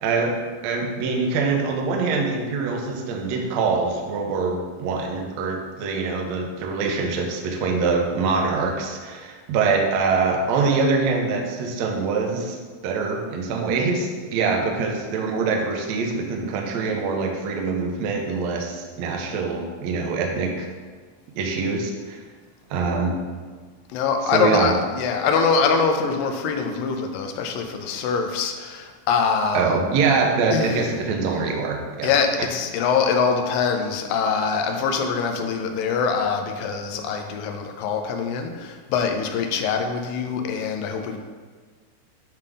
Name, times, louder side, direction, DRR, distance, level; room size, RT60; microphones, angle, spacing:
voice 1, 0.0-20.7 21.4-22.2 22.7-23.1 24.3-24.7 29.5-32.1, right 4 dB, 90° right, 1 dB, 1.5 m, -24 dB
voice 2, 23.9-29.8 30.5-30.8 32.0-41.2, left 5 dB, 80° left, 4 dB, 2.2 m, -23 dB
9.2 x 3.6 x 5.3 m, 1.5 s
omnidirectional pair, 4.5 m